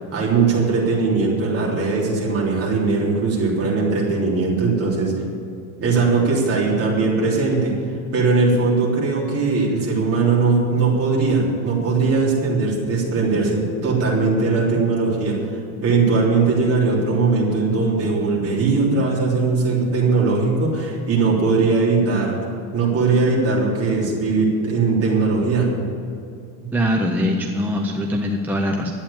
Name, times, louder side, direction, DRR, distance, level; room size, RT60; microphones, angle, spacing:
voice 1, 0.1-5.1 5.8-7.7 8.1-15.3 15.8-22.4 22.7-25.7, right 4 dB, 35° right, -4 dB, 3.3 m, -19 dB
voice 2, 26.7-28.9, equal, 5° right, 1 dB, 0.4 m, -22 dB
11.0 x 8.6 x 8.6 m, 2.4 s
cardioid pair, 165°, 41 cm